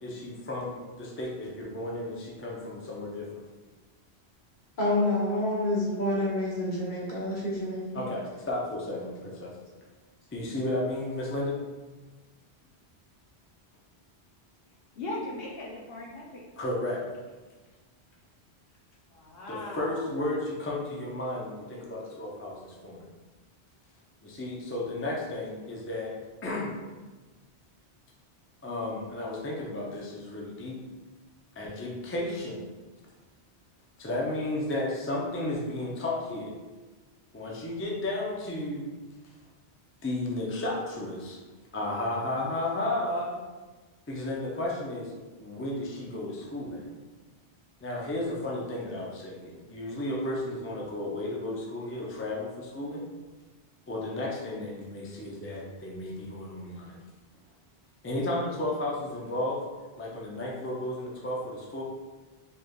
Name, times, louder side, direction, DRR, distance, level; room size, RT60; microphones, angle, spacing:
voice 1, 0.0-3.4 7.9-9.5 10.3-11.6 16.6-17.0 19.5-23.0 24.2-26.1 26.4-26.7 28.6-30.8 31.6-32.6 34.0-36.5 37.3-38.9 40.0-41.4 41.7-43.4 44.1-45.1 45.4-46.9 47.8-53.0 53.9-57.0 58.0-59.6 60.0-61.8, left 1 dB, 20° left, -3 dB, 0.3 m, -33 dB
voice 2, 4.8-7.8, left 1 dB, 50° left, -6 dB, 1.3 m, -28 dB
voice 3, 15.0-16.4 19.1-20.1, left 2 dB, 65° left, -4 dB, 0.9 m, -38 dB
4.2 x 3.3 x 2.3 m, 1.3 s
omnidirectional pair, 1.1 m